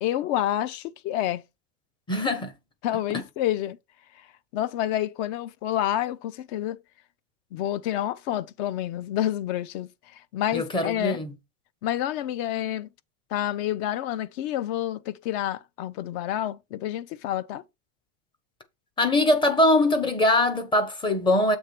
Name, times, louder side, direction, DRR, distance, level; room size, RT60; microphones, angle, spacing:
voice 1, 0.0-1.4 2.8-3.8 4.5-6.8 7.5-11.2 11.8-12.9 13.3-17.6, left 12 dB, 50° left, 0.5 m, -28 dB
voice 2, 2.1-2.5 10.5-11.3 19.0-21.6, left 1 dB, 10° left, 0.6 m, -22 dB
7.1 x 3.3 x 5.9 m
supercardioid pair, 165°, 42 cm